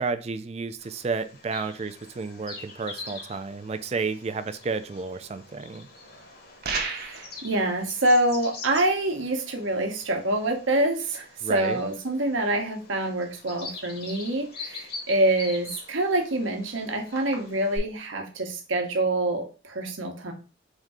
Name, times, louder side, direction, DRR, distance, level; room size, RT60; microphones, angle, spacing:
voice 1, 0.0-5.9 11.4-11.8, right 4 dB, 30° right, 0.3 m, -31 dB
Bird vocalization bird call bird song, 0.8-17.8, left 3 dB, 50° left, 1.2 m, -44 dB
sound 1, 6.6-7.4, right 4 dB, 50° right, 0.8 m, -30 dB
voice 2, 6.9-20.3, right 1 dB, 80° right, 1.0 m, -26 dB
3.7 x 2.7 x 4.7 m
head